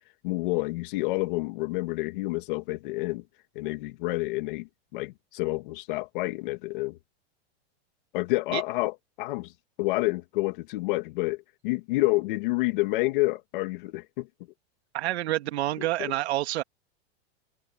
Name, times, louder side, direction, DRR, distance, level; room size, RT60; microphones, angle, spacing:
voice 1, 0.2-3.2 3.5-7.0 8.1-9.5 9.8-14.3 16.0-16.1, left 22 dB, 50° left, 2.6 m, -29 dB
voice 2, 14.9-16.6, right 15 dB, 75° right, 2.0 m, -28 dB
supercardioid pair, 175°, 33 cm